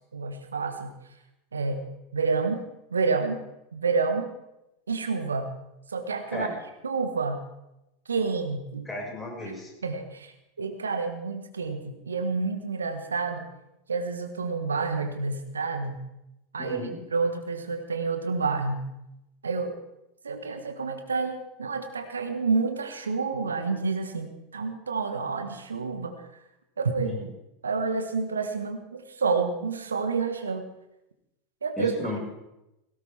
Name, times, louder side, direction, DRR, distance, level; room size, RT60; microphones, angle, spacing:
voice 1, 0.1-0.9 1.5-2.6 2.9-3.4 3.7-4.3 4.9-5.5 5.9-6.5 6.8-7.4 8.1-8.9 9.8-10.3 10.6-13.5 13.9-16.0 16.5-18.9 19.4-19.8 20.2-26.3 26.8-27.2 27.6-30.6 31.6-32.1, right 4 dB, 80° right, 7 dB, 1.6 m, -29 dB
voice 2, 8.9-9.7 16.6-17.0 27.0-27.3 31.8-32.2, left 2 dB, 10° left, -2 dB, 5.9 m, -34 dB
17.5 x 16.5 x 3.6 m, 0.90 s
figure-of-eight pair, 85°, 0 cm